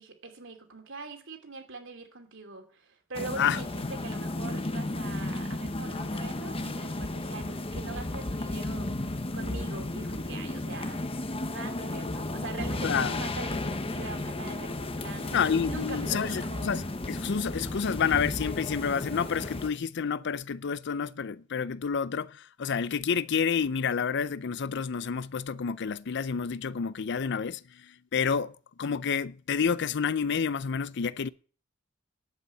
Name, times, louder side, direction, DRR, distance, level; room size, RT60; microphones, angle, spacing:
voice 1, 0.0-11.0 11.5-15.4 15.7-16.7, right 3 dB, 65° right, 2.8 m, -43 dB
sound 1, 3.1-19.7, left 2 dB, 30° left, 1.0 m, -34 dB
voice 2, 3.4-3.9 12.8-13.2 15.3-28.5 28.8-31.3, left 6 dB, 60° left, 0.5 m, -29 dB
10.5 x 8.3 x 8.2 m
head